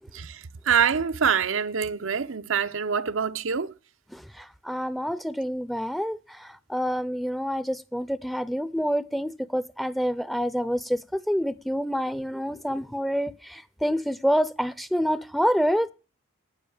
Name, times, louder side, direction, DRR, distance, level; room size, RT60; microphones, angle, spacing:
voice 1, 0.1-3.7, right 7 dB, 80° right, 0.7 m, -25 dB
voice 2, 4.1-15.9, equal, ahead, 0.6 m, -27 dB
12.5 x 9.5 x 7.1 m
head